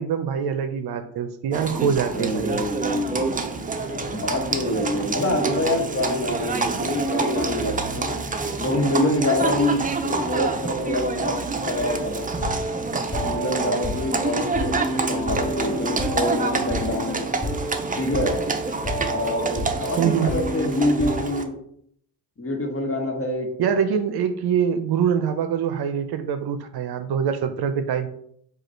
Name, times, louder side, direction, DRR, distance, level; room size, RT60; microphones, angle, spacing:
voice 1, 0.0-2.6 20.0-20.3 23.6-28.1, right 7 dB, 60° right, 9 dB, 0.6 m, -24 dB
Livestock farm animals working animals, 1.5-21.4, right 4 dB, 20° right, 0.6 m, -28 dB
voice 2, 1.7-8.2 8.6-11.4 11.7-12.3 12.9-17.3 18.0-18.4 19.1-21.6 22.4-23.5, left 1 dB, 30° left, 3 dB, 1.3 m, -26 dB
sound 1, 11.7-21.2, right 1 dB, 10° left, 1.8 m, -30 dB
4.9 x 2.4 x 4.5 m, 0.67 s
supercardioid pair, 60°, 44 cm